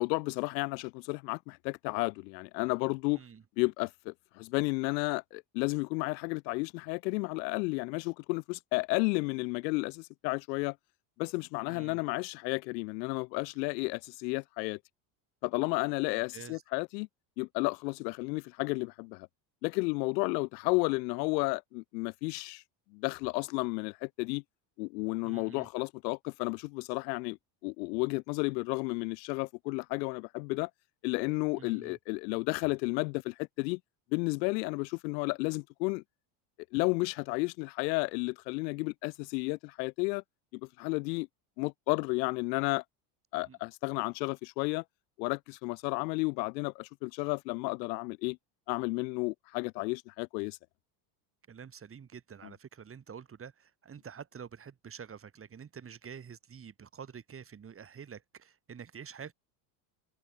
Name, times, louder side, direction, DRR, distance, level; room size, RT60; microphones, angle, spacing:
voice 1, 0.0-3.2 3.6-10.8 11.2-14.8 15.4-17.1 17.4-19.3 19.6-22.6 22.9-24.4 24.8-27.4 27.6-30.7 31.0-33.8 34.1-36.0 36.7-40.2 40.5-41.3 41.6-42.8 43.3-44.8 45.2-48.4 48.7-50.6, left 27 dB, 90° left, 0.6 m, -32 dB
voice 2, 11.7-12.0 16.1-16.6 25.2-25.7 31.6-32.0 43.4-43.6 51.5-59.3, right 7 dB, 25° right, 4.7 m, -48 dB
supercardioid pair, 120°, 49 cm